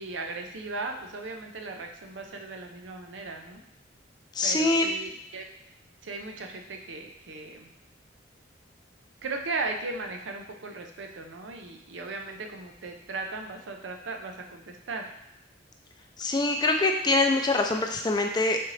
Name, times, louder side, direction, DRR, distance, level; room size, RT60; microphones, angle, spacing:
voice 1, 0.0-3.6 4.4-5.5 6.0-7.7 9.2-15.1, right 3 dB, 85° right, 3 dB, 0.6 m, -37 dB
voice 2, 4.3-4.9 16.2-18.6, left 2 dB, 20° left, 4 dB, 0.4 m, -24 dB
4.3 x 3.8 x 3.2 m, 0.78 s
head